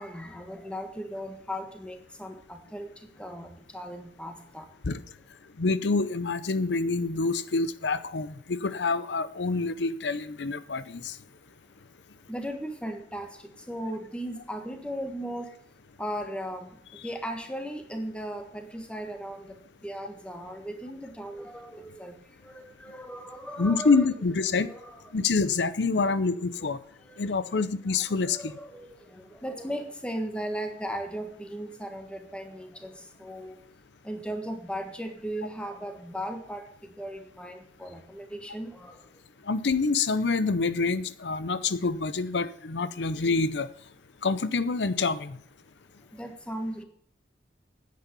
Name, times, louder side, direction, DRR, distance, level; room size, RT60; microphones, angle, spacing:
voice 1, 0.0-2.9 3.2-4.7 12.3-15.5 16.0-16.7 17.0-19.5 19.8-22.1 22.4-24.1 24.5-25.1 26.0-26.1 26.6-26.7 27.0-27.6 28.0-33.6 34.0-39.0 46.1-46.8, equal, 5° left, 5 dB, 1.5 m, -37 dB
voice 2, 5.6-11.1 23.6-24.7 25.1-26.8 27.2-28.5 39.5-43.7 44.2-45.4, left 4 dB, 85° left, 14 dB, 0.7 m, -26 dB
9.9 x 8.5 x 6.9 m, 0.64 s
head